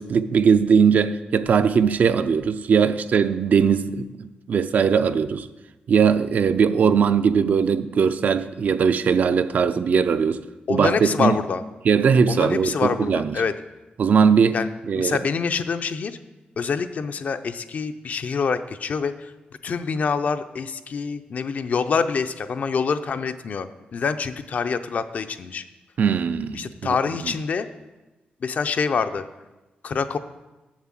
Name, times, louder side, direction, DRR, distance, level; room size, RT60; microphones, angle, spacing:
voice 1, 0.0-5.5 5.9-10.4 10.7-11.4 11.8-13.4 14.0-14.6 14.9-15.2 26.0-27.0 27.2-27.3, right 6 dB, 55° right, 0.4 m, -20 dB
voice 2, 10.7-11.6 12.3-13.5 14.5-14.7 14.9-16.1 16.6-19.3 19.6-23.7 23.9-25.6 26.5-27.7 28.4-29.2 29.8-30.2, left 5 dB, 50° left, 0.5 m, -25 dB
7.3 x 6.8 x 7.4 m
wide cardioid pair, 160°, 3 cm